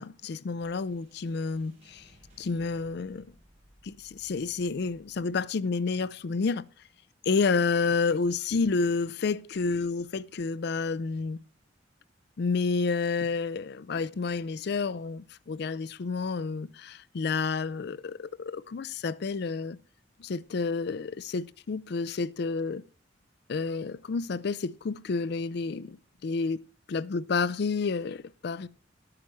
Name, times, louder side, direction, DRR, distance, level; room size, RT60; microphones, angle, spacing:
voice 1, 0.0-2.1 2.4-3.3 3.8-6.7 7.3-11.4 12.4-19.8 20.2-22.8 23.5-26.0 26.2-26.6 26.9-28.7, left 4 dB, 60° left, 0.4 m, -30 dB
sound 1, 0.6-9.0, equal, 35° right, 4.6 m, -62 dB
11.0 x 8.8 x 4.5 m
head